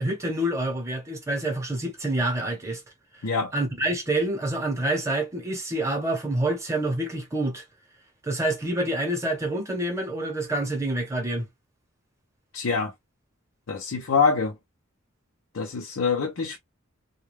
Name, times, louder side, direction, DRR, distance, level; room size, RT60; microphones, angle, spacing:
voice 1, 0.0-2.8 3.5-7.6 8.2-11.5, right 1 dB, 15° right, 0.8 m, -27 dB
voice 2, 3.2-3.5 12.5-12.9 13.7-14.6 15.5-16.6, left 5 dB, 80° left, 0.6 m, -25 dB
2.3 x 2.2 x 3.1 m
head